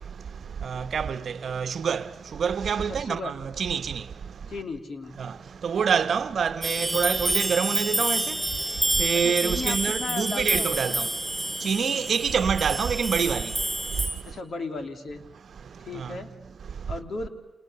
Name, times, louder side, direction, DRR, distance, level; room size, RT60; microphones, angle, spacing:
voice 1, 0.6-2.0 2.4-4.0 5.2-5.3 5.6-8.3 9.0-11.1 11.6-13.5 16.0-16.1, right 6 dB, 70° right, 1.0 m, -26 dB
voice 2, 2.8-3.3 4.5-5.2 9.1-11.0 14.2-15.2 15.9-16.3 16.9-17.3, left 3 dB, 65° left, 2.9 m, -35 dB
sound 1, 6.6-14.1, right 1 dB, 10° right, 7.7 m, -28 dB
30.0 x 28.0 x 6.9 m
supercardioid pair, 50°, 0 cm